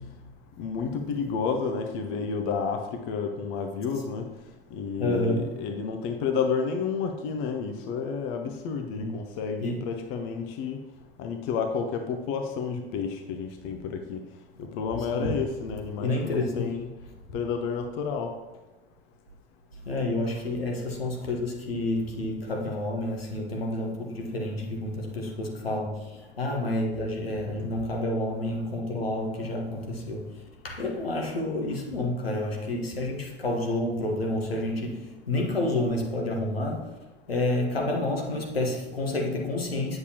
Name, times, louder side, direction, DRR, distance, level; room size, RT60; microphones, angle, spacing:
voice 1, 0.6-4.3 4.7-10.8 11.2-14.2 14.6-16.9 17.3-18.3, left 5 dB, 45° left, 5 dB, 0.8 m, -30 dB
voice 2, 5.0-5.5 8.9-9.1 9.6-9.8 15.1-15.3 16.0-16.7 19.8-30.3 30.6-36.9 37.3-40.0, left 1 dB, 80° left, 0 dB, 1.3 m, -29 dB
8.3 x 6.7 x 2.9 m, 1.1 s
figure-of-eight pair, 75°, 29 cm